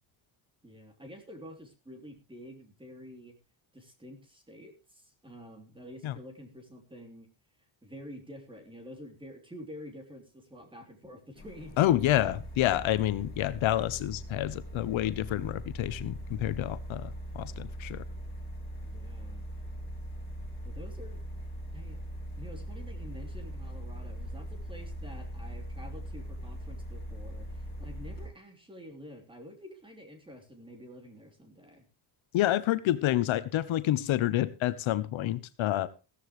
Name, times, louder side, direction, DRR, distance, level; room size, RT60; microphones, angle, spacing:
voice 1, 0.6-3.3 3.7-7.3 7.8-11.8 18.8-19.5 20.6-21.2 21.7-22.0 22.4-31.8, equal, 10° right, 4 dB, 3.1 m, -48 dB
sound 1, 11.4-28.3, equal, 20° left, 7.8 m, -41 dB
voice 2, 11.8-18.0 32.3-35.9, left 13 dB, 70° left, 13 dB, 1.0 m, -28 dB
16.0 x 14.0 x 3.1 m, 0.31 s
cardioid pair, 175°, 49 cm